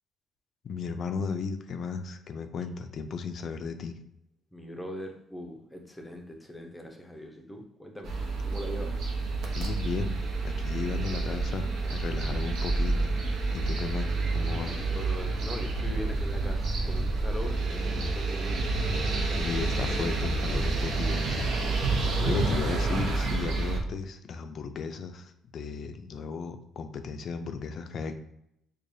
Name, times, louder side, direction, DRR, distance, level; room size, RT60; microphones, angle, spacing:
voice 1, 0.6-3.9 9.6-13.1 13.5-14.8 19.3-21.4 22.2-28.1, left 5 dB, 50° left, 8 dB, 0.4 m, -35 dB
voice 2, 4.5-8.1 8.4-8.9 14.6-18.7 19.1-19.7 22.1-22.7, equal, 5° left, 2 dB, 0.6 m, -41 dB
sound 1, 8.0-23.8, right 3 dB, 65° right, 0.7 m, -29 dB
4.7 x 2.3 x 2.6 m, 0.75 s
cardioid pair, 120°, 0 cm